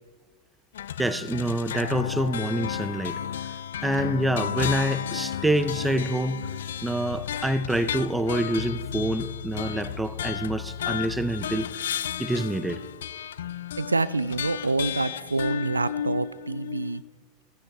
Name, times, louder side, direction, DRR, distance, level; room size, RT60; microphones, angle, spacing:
sound 1, 0.7-17.0, left 10 dB, 60° left, 0.4 m, -33 dB
voice 1, 1.0-3.2 3.8-6.5 6.8-12.8, right 1 dB, 5° right, 14 dB, 0.7 m, -27 dB
voice 2, 13.8-17.0, right 3 dB, 80° right, 18 dB, 0.4 m, -27 dB
15.5 x 14.5 x 4.5 m, 1.3 s
figure-of-eight pair, 90°, 0 cm